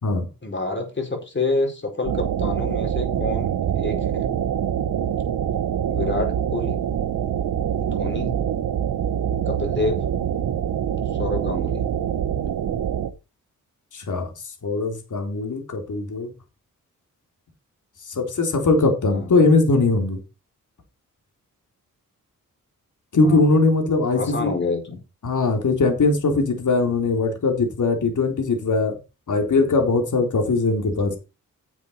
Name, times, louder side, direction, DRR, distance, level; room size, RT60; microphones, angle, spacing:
voice 1, 0.4-4.3 5.9-6.8 7.8-8.4 9.4-10.0 11.2-11.9 19.1-19.4 23.2-23.6 24.1-25.0 30.9-31.2, left 3 dB, 35° left, 2 dB, 5.0 m, -28 dB
sound 1, 2.0-13.1, right 9 dB, 80° right, 1.0 m, -25 dB
voice 2, 13.9-14.3 14.6-16.3 18.1-20.2 23.1-24.5 25.2-29.0 29.3-31.2, left 3 dB, 65° left, 3 dB, 3.6 m, -20 dB
10.5 x 7.4 x 4.3 m, 0.29 s
cardioid pair, 80°, 33 cm